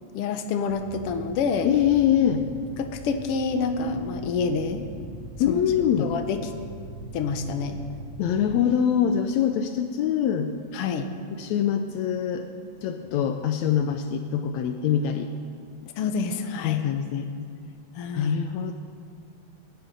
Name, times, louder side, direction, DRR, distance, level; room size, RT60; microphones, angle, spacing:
voice 1, 0.1-1.7 2.8-4.9 5.5-5.6 6.0-6.4 7.1-7.8 10.7-11.1 16.0-16.8 18.0-18.4, left 5 dB, 65° left, 6 dB, 1.7 m, -27 dB
sound 1, 0.7-8.4, right 1 dB, 5° left, 5.1 m, -41 dB
voice 2, 1.6-2.4 5.4-6.1 8.2-10.5 11.4-12.5 12.8-15.3 16.6-17.3 18.1-18.7, left 9 dB, 80° left, 7 dB, 1.9 m, -24 dB
21.0 x 10.5 x 5.3 m, 2.2 s
omnidirectional pair, 3.3 m